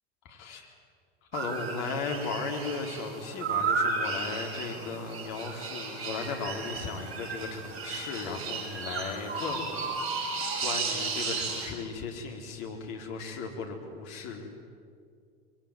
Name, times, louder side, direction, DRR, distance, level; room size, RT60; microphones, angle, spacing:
voice 1, 0.2-0.7 1.3-14.5, left 4 dB, 55° left, 2 dB, 4.2 m, -36 dB
sound 1, 1.3-11.7, right 4 dB, 45° right, 7.4 m, -34 dB
25.0 x 22.5 x 9.4 m, 2.3 s
figure-of-eight pair, 75°, 31 cm